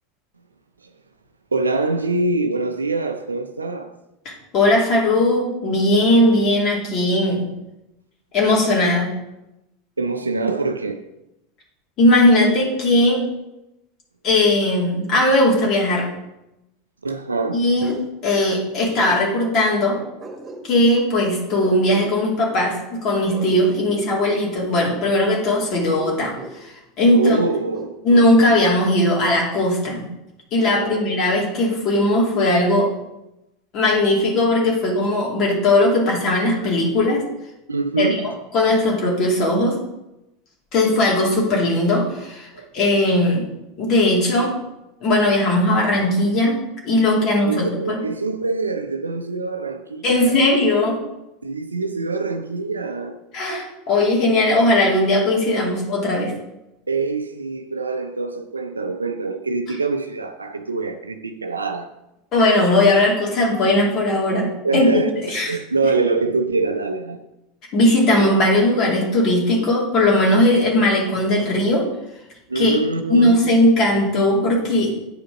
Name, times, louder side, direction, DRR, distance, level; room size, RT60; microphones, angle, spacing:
voice 1, 1.5-3.9 10.0-11.0 17.0-17.6 27.1-27.9 30.8-31.0 37.7-38.2 42.5-42.7 47.4-50.3 51.4-53.2 56.9-61.9 64.6-65.1 65.5-67.2 72.5-73.4, right 3 dB, 80° right, 0.5 m, -24 dB
voice 2, 4.2-7.5 8.3-9.1 12.0-13.2 14.2-16.1 17.5-17.9 18.2-20.0 20.6-27.4 28.0-30.0 30.5-32.9 33.7-37.2 38.0-38.2 38.5-39.8 40.7-42.5 42.7-43.4 43.8-44.5 45.0-48.0 50.0-51.0 53.3-56.3 62.3-64.5 64.7-65.6 65.8-65.9 67.7-71.9 72.5-72.8 73.1-74.9, left 1 dB, 40° left, 2.8 m, -18 dB
Bark, 17.8-18.1 18.9-19.2 20.2-20.9 21.6-22.1 23.3-24.4 25.7-26.6 27.4-28.3, right 2 dB, 25° right, 1.8 m, -36 dB
9.0 x 5.1 x 5.0 m
figure-of-eight pair, 80°, 0 cm